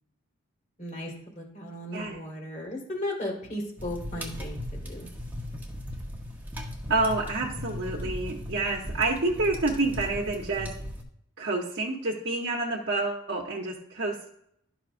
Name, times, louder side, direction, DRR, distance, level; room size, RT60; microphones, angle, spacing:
voice 1, 0.8-5.1, left 1 dB, 35° left, 1 dB, 1.8 m, -36 dB
sound 1, 3.8-11.0, left 1 dB, 10° right, 0.9 m, -37 dB
voice 2, 6.9-10.7 11.4-14.3, right 2 dB, 55° right, -1 dB, 0.9 m, -28 dB
12.0 x 5.7 x 2.5 m, 0.74 s
head